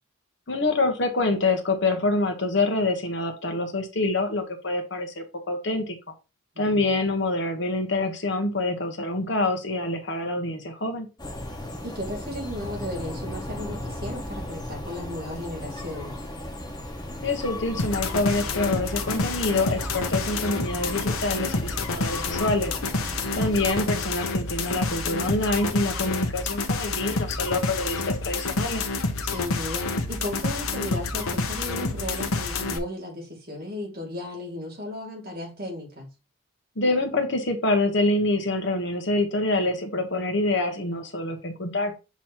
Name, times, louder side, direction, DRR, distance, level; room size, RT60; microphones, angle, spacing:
voice 1, 0.5-6.0 6.6-11.1 17.2-22.8 23.3-28.8 36.8-41.9, left 2 dB, 55° left, 1.2 m, -26 dB
voice 2, 6.5-6.9 11.8-16.2 29.2-36.1, left 1 dB, 45° right, 2.5 m, -35 dB
sound 1, 11.2-23.8, left 1 dB, 20° left, 1.3 m, -37 dB
sound 2, 17.8-32.8, left 3 dB, 90° left, 1.0 m, -28 dB
7.1 x 3.1 x 4.3 m
head